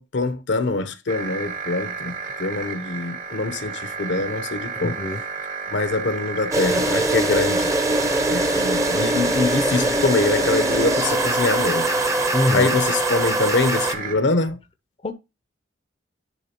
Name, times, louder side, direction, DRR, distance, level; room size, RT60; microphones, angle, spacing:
voice 1, 0.0-5.0 5.7-7.7 8.3-11.9 12.5-14.6, left 3 dB, 75° left, 0.8 m, -24 dB
sound 1, 1.1-14.1, right 5 dB, 45° right, 1.0 m, -32 dB
voice 2, 4.8-5.2 12.3-12.8 15.0-15.1, left 1 dB, 30° left, 0.5 m, -24 dB
sound 2, 6.5-13.9, right 1 dB, 15° right, 0.6 m, -22 dB
10.5 x 3.6 x 2.9 m
head